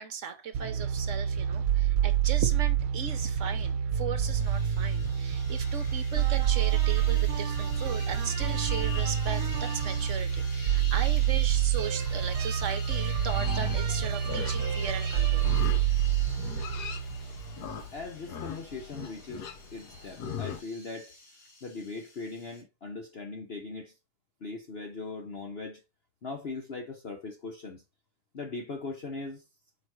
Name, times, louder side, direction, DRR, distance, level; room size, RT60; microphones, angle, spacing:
voice 1, 0.0-15.5, right 7 dB, 45° right, 1.1 m, -37 dB
sound 1, 0.5-17.9, right 9 dB, 85° right, 1.6 m, -27 dB
sound 2, 4.4-22.6, left 4 dB, 45° left, 3.0 m, -47 dB
Livestock farm animals working animals, 13.3-20.6, left 7 dB, 60° left, 1.3 m, -40 dB
voice 2, 17.9-21.1 21.6-23.9 24.4-25.8 26.2-27.8 28.3-29.4, left 3 dB, 75° left, 0.5 m, -40 dB
5.9 x 5.1 x 4.6 m
omnidirectional pair, 2.3 m